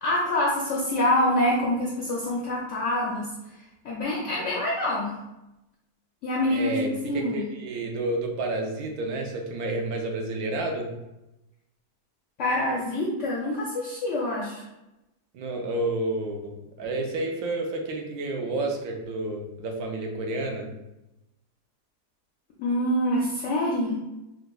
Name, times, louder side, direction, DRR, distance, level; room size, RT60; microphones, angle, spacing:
voice 1, 0.0-3.3 3.8-5.1 6.2-6.8 7.0-7.4 12.4-14.6 22.6-24.0, left 1 dB, 70° left, -4 dB, 0.7 m, -26 dB
voice 2, 6.5-10.9 15.3-20.7, right 2 dB, 70° right, 2 dB, 1.0 m, -30 dB
4.6 x 2.2 x 2.3 m, 0.95 s
omnidirectional pair, 1.8 m